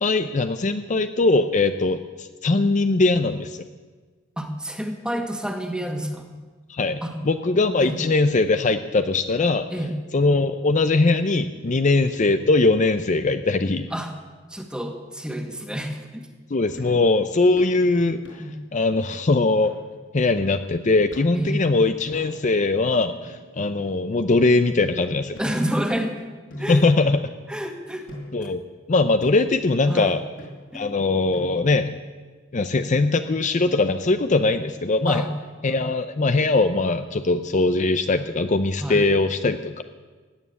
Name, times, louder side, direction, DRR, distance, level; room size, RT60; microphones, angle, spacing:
voice 1, 0.0-3.6 6.7-9.7 10.1-13.9 16.5-18.2 18.7-19.7 20.1-25.4 26.7-27.2 28.3-30.2 30.7-32.0 32.5-35.3 35.6-39.8, left 3 dB, 40° left, 9 dB, 0.6 m, -21 dB
voice 2, 4.4-6.3 7.0-7.2 7.8-8.0 9.7-10.0 13.9-14.1 14.5-16.3 18.4-18.6 21.3-21.6 25.4-26.1 26.6-26.8 27.5-28.1 28.4-28.5 29.9-30.1 30.7-30.9 35.1-35.3 35.7-35.8 38.8-39.1, equal, 5° right, 4 dB, 1.7 m, -29 dB
sound 1, 16.8-17.0 17.6-17.8 18.2-18.6 19.1-19.2 19.6-19.8 20.4-20.6 21.1-21.5 22.1-22.6 23.2-23.9 24.7-24.8 25.3-26.0 26.5-27.5 28.1-28.5 29.2-29.6 30.4-30.8 31.3-31.8, left 1 dB, 75° left, 5.3 m, -43 dB
16.5 x 8.6 x 10.0 m, 1.4 s
head